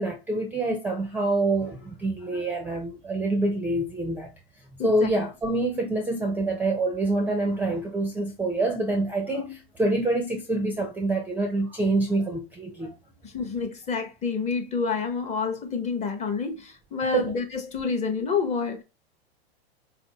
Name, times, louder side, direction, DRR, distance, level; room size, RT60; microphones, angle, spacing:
voice 1, 0.0-4.3 4.8-13.0 17.1-17.3, right 2 dB, 5° right, 0.5 m, -26 dB
voice 2, 4.8-5.1 13.2-18.8, left 5 dB, 20° left, 0.7 m, -28 dB
4.0 x 2.6 x 2.7 m
hypercardioid pair, 110°, 31 cm